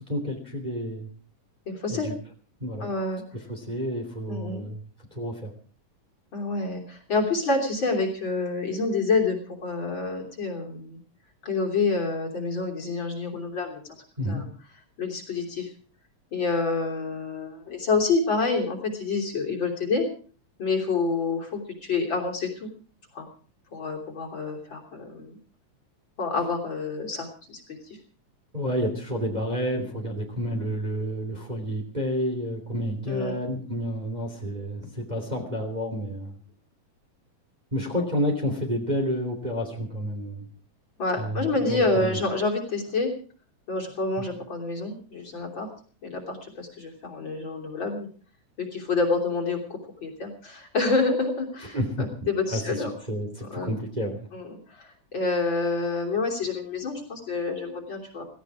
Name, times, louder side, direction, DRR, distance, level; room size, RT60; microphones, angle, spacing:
voice 1, 0.1-1.1 1.9-2.1 2.6-2.9 3.5-4.8 5.1-5.5 14.2-14.4 28.5-36.3 37.7-40.4 41.2-42.2 51.7-52.1 52.5-54.2, equal, 15° right, 2 dB, 3.1 m, -30 dB
voice 2, 1.7-2.1 2.8-3.2 4.3-4.6 6.3-9.4 9.6-11.0 11.4-13.8 14.2-14.5 15.0-15.7 16.3-20.1 20.6-22.7 23.1-23.3 23.7-25.4 26.2-28.0 33.1-33.4 38.0-38.1 41.0-43.1 43.7-45.7 46.0-48.1 48.6-53.0 53.5-53.7 54.3-58.2, left 3 dB, 40° left, 2 dB, 3.9 m, -28 dB
17.5 x 17.5 x 4.8 m, 0.41 s
omnidirectional pair, 3.3 m